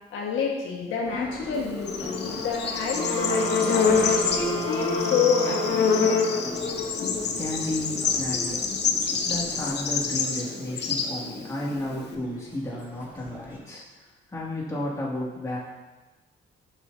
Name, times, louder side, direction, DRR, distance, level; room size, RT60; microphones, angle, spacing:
voice 1, 0.1-6.1, left 6 dB, 75° left, -3 dB, 1.7 m, -29 dB
Subway metro underground, 1.0-13.6, equal, 10° right, 1.9 m, -41 dB
Bird / Insect, 1.5-12.1, left 5 dB, 60° left, 1.0 m, -26 dB
sound 1, 2.9-6.8, right 2 dB, 60° right, 2.2 m, -34 dB
voice 2, 7.2-8.7 9.2-15.6, left 1 dB, 15° left, -6 dB, 2.5 m, -33 dB
11.5 x 6.5 x 2.8 m, 1.2 s
cardioid pair, 90°, 20 cm